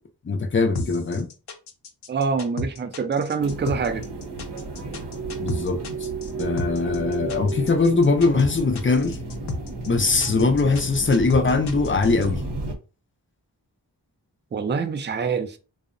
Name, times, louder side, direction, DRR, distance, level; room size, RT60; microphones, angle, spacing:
voice 1, 0.2-1.3 5.4-6.1 6.4-9.2 9.9-12.4, left 3 dB, 30° left, 0.5 m, -21 dB
sound 1, 0.7-12.3, left 2 dB, 75° left, 0.6 m, -33 dB
voice 2, 2.1-4.1 14.5-15.6, right 5 dB, 30° right, 0.4 m, -25 dB
sound 2, 3.4-12.8, right 2 dB, 80° right, 0.6 m, -32 dB
2.7 x 2.0 x 2.5 m
cardioid pair, 40°, 41 cm